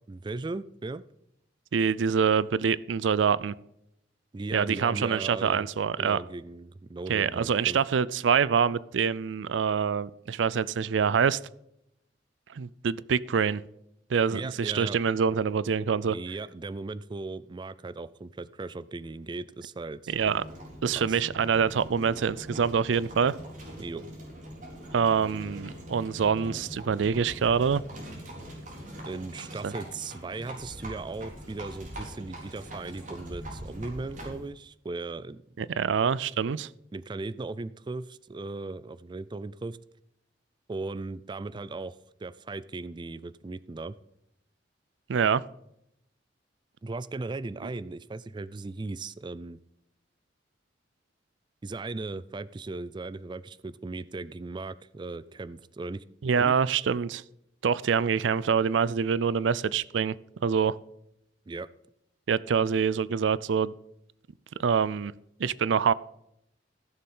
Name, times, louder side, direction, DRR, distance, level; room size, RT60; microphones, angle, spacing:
voice 1, 0.1-1.0 4.3-5.7 6.0-7.8 14.3-15.0 16.1-20.1 20.9-21.2 23.8-24.0 29.0-35.4 36.9-39.8 40.7-44.0 46.8-49.6 51.6-56.0 56.4-56.5 56.8-57.0 61.5-61.7, right 3 dB, 25° right, 16 dB, 0.4 m, -37 dB
voice 2, 1.7-3.5 4.5-6.2 7.1-11.4 12.5-13.6 14.1-16.2 20.1-20.4 20.8-23.3 24.9-27.8 29.6-29.7 35.6-36.7 45.1-45.4 56.2-57.2 57.6-60.2 60.4-60.8 62.3-63.7 64.6-65.1 65.4-65.9, right 6 dB, 90° right, 20 dB, 0.4 m, -25 dB
Livestock farm animals working animals, 20.1-34.5, equal, 45° right, 4.0 m, -42 dB
15.0 x 6.9 x 5.5 m, 0.79 s
head